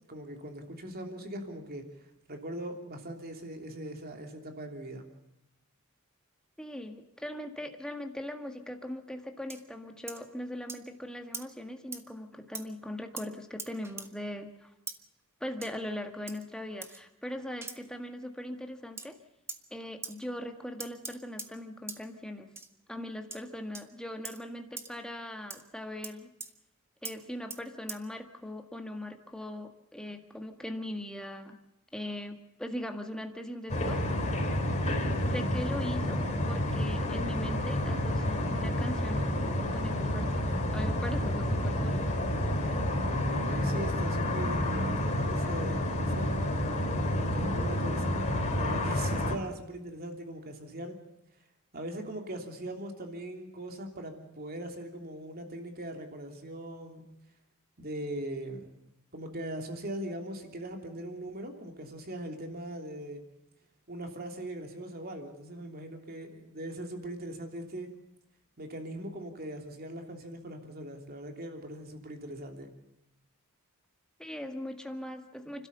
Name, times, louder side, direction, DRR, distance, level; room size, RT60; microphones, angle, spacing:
voice 1, 0.1-1.8 2.3-5.1 42.7-46.3 47.4-48.2 48.6-51.0 51.7-57.1 57.8-58.7 59.1-63.2 63.9-67.9 68.6-72.7, right 1 dB, 45° right, 4 dB, 3.1 m, -40 dB
voice 2, 6.6-14.7 15.4-19.2 19.7-22.5 22.9-26.3 27.0-31.6 31.9-34.0 35.2-42.1 74.2-75.7, left 1 dB, 5° left, 4 dB, 1.8 m, -40 dB
sound 1, 9.5-9.6 10.1-10.2 10.7-10.8 11.3-11.5 11.9-12.0 12.5-12.7 13.2-13.3 13.6-14.1 14.9-15.0 15.6-15.8 16.3-16.4 16.8-17.0 17.6-17.8 19.0-19.1 19.5-19.6 20.0-20.2 20.8-21.5 21.9-22.0 22.6-22.7 23.3-23.4 23.7-23.9 24.2-24.4 24.8-24.9 25.5-25.6 26.0-26.1 26.4-26.5 27.1-27.2 27.5-27.6 27.9-28.0, right 3 dB, 10° right, 1.2 m, -41 dB
sound 2, 33.7-49.3, left 1 dB, 35° left, 4.6 m, -29 dB
30.0 x 13.0 x 6.9 m, 0.88 s
head